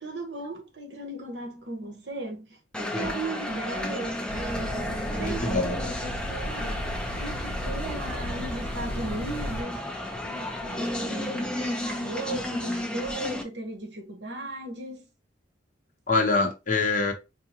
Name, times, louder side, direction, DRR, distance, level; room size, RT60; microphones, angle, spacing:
voice 1, 0.0-2.5 2.8-10.0 10.3-15.1, right 2 dB, 65° right, 1.0 m, -36 dB
sound 1, 2.7-13.4, left 1 dB, 5° left, 0.7 m, -33 dB
sound 2, 4.3-9.6, equal, 35° right, 1.0 m, -35 dB
voice 2, 5.1-5.8 16.1-17.1, left 3 dB, 45° left, 1.0 m, -25 dB
4.7 x 2.4 x 2.8 m
head